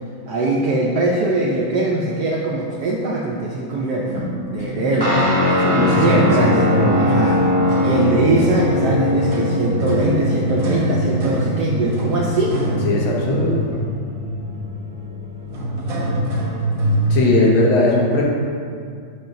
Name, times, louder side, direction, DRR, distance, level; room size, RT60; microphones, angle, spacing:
voice 1, 0.3-4.3 4.5-5.3 6.0-6.6 7.0-7.4 7.7-12.6 17.6-17.7, right 2 dB, 70° right, -3 dB, 0.9 m, -21 dB
sound 1, 4.0-17.1, right 1 dB, 50° right, 1.2 m, -26 dB
Guitar, 5.0-13.8, left 1 dB, 25° right, 0.5 m, -21 dB
voice 2, 5.6-7.1 12.8-13.6 17.1-18.2, left 2 dB, 75° left, -4 dB, 1.8 m, -19 dB
sound 2, 9.0-16.4, equal, 15° left, 1.2 m, -33 dB
6.5 x 2.9 x 5.7 m, 2.3 s
omnidirectional pair, 2.2 m